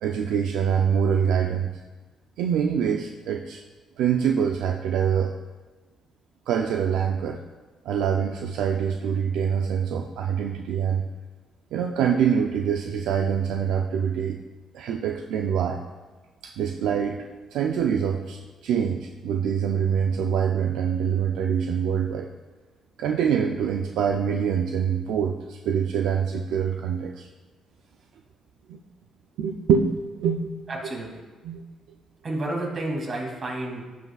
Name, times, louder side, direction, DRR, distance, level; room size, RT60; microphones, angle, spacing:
voice 1, 0.0-1.7 2.4-3.6 4.0-5.4 6.5-7.4 7.9-11.0 11.7-14.4 14.7-15.8 16.4-17.3 17.5-22.3 23.0-27.3 28.7-28.8 29.4-30.6 31.4-31.6, right 7 dB, 85° right, 2 dB, 0.4 m, -25 dB
voice 2, 30.7-31.1 32.2-33.8, right 1 dB, 45° right, -1 dB, 2.4 m, -30 dB
15.5 x 5.5 x 2.3 m, 1.3 s
cardioid pair, 90°, 0 cm